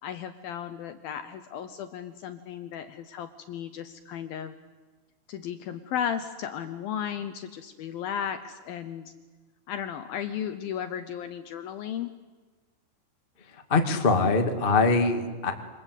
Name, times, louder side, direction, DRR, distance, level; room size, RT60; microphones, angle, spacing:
voice 1, 0.0-4.5 5.3-9.1 9.7-12.1, left 9 dB, 75° left, 10 dB, 2.3 m, -35 dB
voice 2, 13.7-15.5, left 3 dB, 30° left, 5 dB, 1.0 m, -23 dB
27.5 x 26.0 x 8.3 m, 1.3 s
omnidirectional pair, 5.2 m